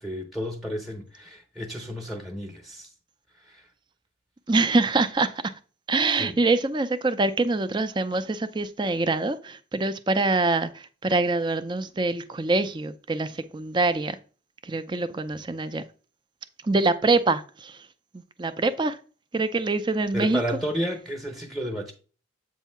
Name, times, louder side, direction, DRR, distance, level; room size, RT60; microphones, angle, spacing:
voice 1, 0.0-2.9 3.4-3.7 6.2-6.4 20.1-21.9, equal, ahead, 0.9 m, -32 dB
voice 2, 4.5-5.5 5.9-14.2 14.6-15.8 16.6-17.9 18.1-19.0 19.3-20.4, right 3 dB, 25° right, 0.4 m, -25 dB
8.1 x 2.8 x 5.6 m
head